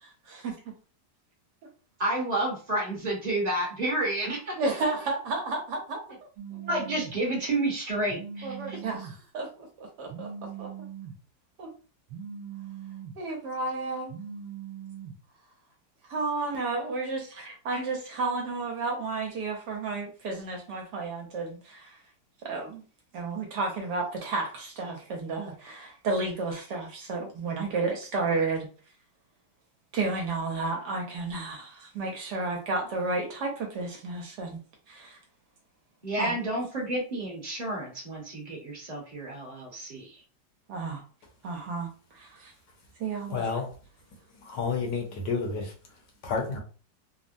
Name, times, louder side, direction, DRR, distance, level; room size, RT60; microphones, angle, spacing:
voice 1, 0.0-0.6 4.6-6.0 8.4-10.7 11.6-11.7 13.2-14.1 16.1-22.0 22.4-22.8 23.1-28.7 29.9-34.6 34.9-35.2 36.2-36.4 40.7-41.0 41.4-42.5 43.0-43.4, right 3 dB, 70° right, 1.2 m, -32 dB
voice 2, 2.0-4.6 6.5-8.8 36.0-40.2, right 1 dB, 30° right, 1.0 m, -30 dB
Telephone, 6.4-7.2 8.1-9.1 10.1-11.2 12.1-13.2 14.1-15.1, right 8 dB, 85° right, 1.3 m, -40 dB
voice 3, 43.3-43.7 44.4-45.7 46.2-46.6, left 5 dB, 75° left, 1.4 m, -30 dB
3.5 x 2.0 x 2.5 m
omnidirectional pair, 2.0 m